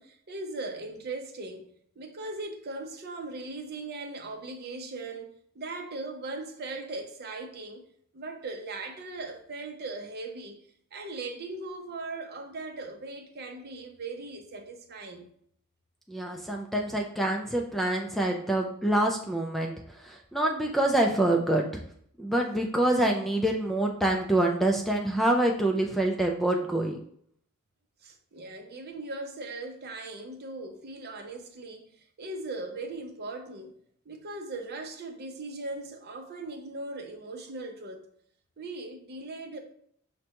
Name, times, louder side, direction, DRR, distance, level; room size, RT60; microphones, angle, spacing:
voice 1, 0.0-1.7 2.0-7.8 8.1-10.6 10.9-15.3 28.0-33.7 34.1-38.1 38.6-39.6, right 2 dB, 50° right, 0.6 m, -39 dB
voice 2, 16.1-19.7 20.0-21.8 22.2-27.0, right 1 dB, ahead, 0.3 m, -26 dB
6.2 x 2.2 x 2.8 m
head